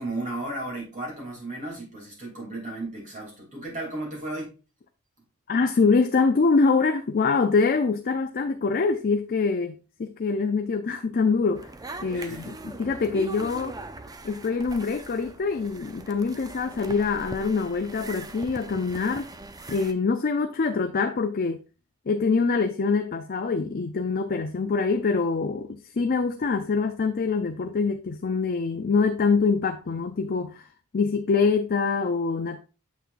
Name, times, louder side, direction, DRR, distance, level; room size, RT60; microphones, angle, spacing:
voice 1, 0.0-4.5 12.1-12.6, right 2 dB, 35° right, 2.9 m, -34 dB
voice 2, 5.5-9.7 10.0-11.7 12.0-13.8 14.2-19.3 19.7-21.6 22.1-30.6 30.9-32.6, left 4 dB, 40° left, 0.5 m, -24 dB
sound 1, 11.5-19.9, right 2 dB, 15° right, 0.5 m, -41 dB
6.9 x 6.2 x 2.5 m
head